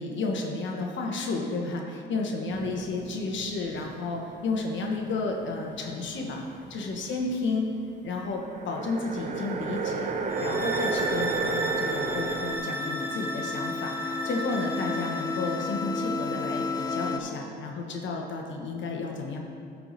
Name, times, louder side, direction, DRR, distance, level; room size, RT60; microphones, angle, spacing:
voice 1, 0.0-6.4 6.7-7.7 8.0-10.1 10.4-19.4, left 3 dB, 70° left, 1 dB, 1.2 m, -32 dB
sound 1, 2.5-4.3 4.6-7.8 8.4-12.6, right 4 dB, 40° right, 0.7 m, -33 dB
sound 2, 10.3-15.7, right 2 dB, 10° right, 0.8 m, -35 dB
sound 3, 10.4-17.2, left 4 dB, 20° left, 0.5 m, -33 dB
13.0 x 4.8 x 4.1 m, 2.7 s
cardioid pair, 90°, 20 cm